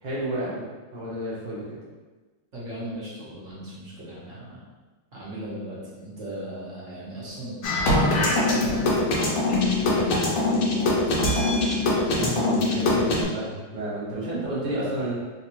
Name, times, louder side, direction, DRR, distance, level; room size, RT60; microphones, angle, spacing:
voice 1, 0.0-0.6 0.9-1.8 12.2-15.2, right 1 dB, 75° right, -8 dB, 0.4 m, -30 dB
voice 2, 2.5-4.6 5.1-7.6 7.9-11.7, right 1 dB, 45° right, -8 dB, 1.2 m, -37 dB
sound 1, 7.6-13.2, left 2 dB, 85° left, 1.6 m, -22 dB
3.8 x 2.5 x 2.9 m, 1.3 s
omnidirectional pair, 2.2 m